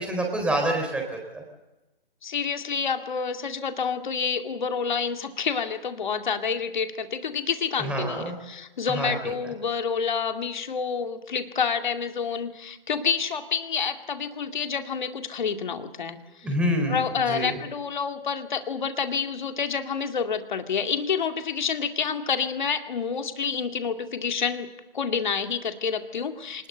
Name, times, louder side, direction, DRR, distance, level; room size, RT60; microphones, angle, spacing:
voice 1, 0.0-1.4 7.8-8.3 8.9-9.1 16.4-17.6, right 1 dB, 5° right, 2 dB, 4.1 m, -27 dB
voice 2, 2.2-16.5 16.9-24.7 24.9-26.7, left 6 dB, 50° left, 6 dB, 2.3 m, -28 dB
26.5 x 20.0 x 6.9 m, 1.0 s
figure-of-eight pair, 140°, 30 cm